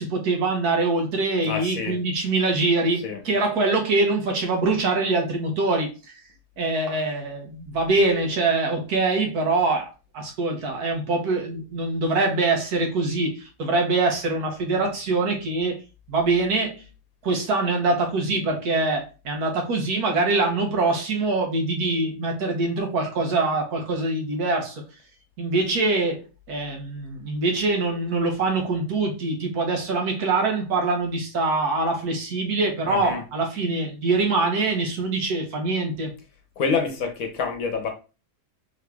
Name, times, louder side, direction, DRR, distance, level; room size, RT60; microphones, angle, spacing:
voice 1, 0.0-6.1 6.6-15.8 16.1-16.8 17.2-24.8 25.4-36.1, right 3 dB, 70° right, 2 dB, 1.5 m, -24 dB
voice 2, 1.4-2.0 3.0-3.2 32.8-33.2 36.6-37.9, left 5 dB, 65° left, 4 dB, 1.1 m, -27 dB
3.7 x 3.1 x 3.4 m, 0.32 s
omnidirectional pair, 1.7 m